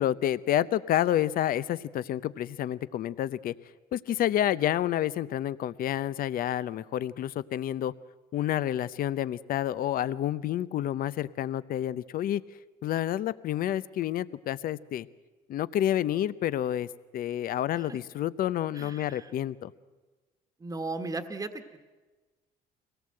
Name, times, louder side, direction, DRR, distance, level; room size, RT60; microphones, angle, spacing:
voice 1, 0.0-3.5 3.9-7.9 8.3-12.4 12.8-15.1 15.5-19.7, left 11 dB, 60° left, 17 dB, 0.7 m, -29 dB
voice 2, 18.7-19.3 20.6-21.8, right 3 dB, 20° right, 7 dB, 1.4 m, -36 dB
23.5 x 18.0 x 7.7 m, 1.3 s
cardioid pair, 110°, 17 cm